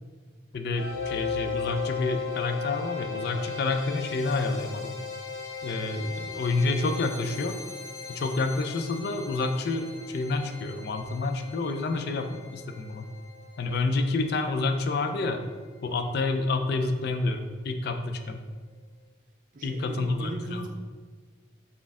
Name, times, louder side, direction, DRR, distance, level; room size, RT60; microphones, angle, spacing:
voice 1, 0.5-5.0 5.6-7.6 8.1-13.0 13.6-15.4 15.8-18.4 19.6-20.6, left 3 dB, 50° left, 7 dB, 0.3 m, -29 dB
sound 1, 0.8-15.7, left 6 dB, 85° left, 0.8 m, -38 dB
voice 2, 19.5-20.7, right 2 dB, 40° right, 3 dB, 0.5 m, -38 dB
4.3 x 3.5 x 3.5 m, 1.5 s
head